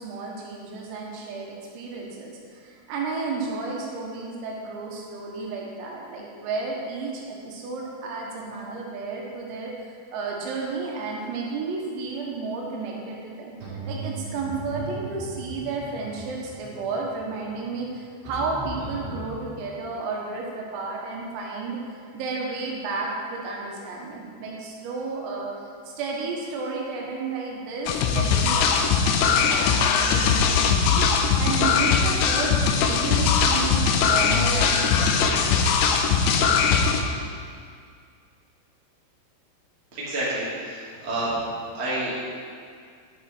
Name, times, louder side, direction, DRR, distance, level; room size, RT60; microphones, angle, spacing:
voice 1, 0.0-25.5 25.9-35.5, right 4 dB, 85° right, -2 dB, 4.1 m, -32 dB
sound 1, 13.6-19.3, right 2 dB, 45° right, 4.1 m, -37 dB
sound 2, 27.9-37.0, left 6 dB, 85° left, 3.0 m, -21 dB
voice 2, 39.9-41.4 41.7-42.1, right 1 dB, 30° right, -9 dB, 1.1 m, -29 dB
11.0 x 7.2 x 4.4 m, 2.2 s
omnidirectional pair, 6.0 m